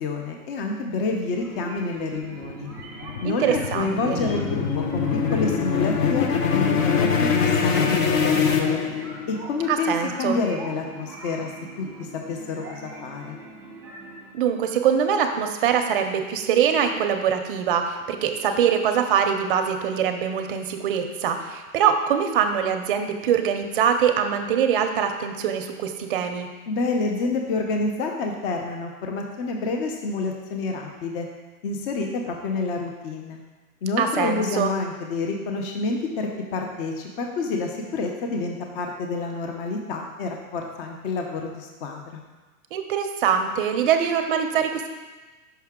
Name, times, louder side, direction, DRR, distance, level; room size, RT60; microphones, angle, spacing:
voice 1, 0.0-2.7 3.2-8.8 9.3-11.5 11.8-11.9 12.1-13.4 26.7-31.3 31.6-33.4 33.8-42.2, left 3 dB, 35° left, 2 dB, 0.7 m, -28 dB
sound 1, 1.3-14.3, right 2 dB, 5° right, 1.0 m, -41 dB
sound 2, 2.2-9.4, left 6 dB, 60° left, 0.8 m, -23 dB
voice 2, 3.2-4.2 9.7-10.4 14.3-26.5 34.0-34.7 42.7-44.9, right 8 dB, 40° right, 6 dB, 0.5 m, -23 dB
5.8 x 5.6 x 3.6 m, 1.2 s
hypercardioid pair, 145°, 45 cm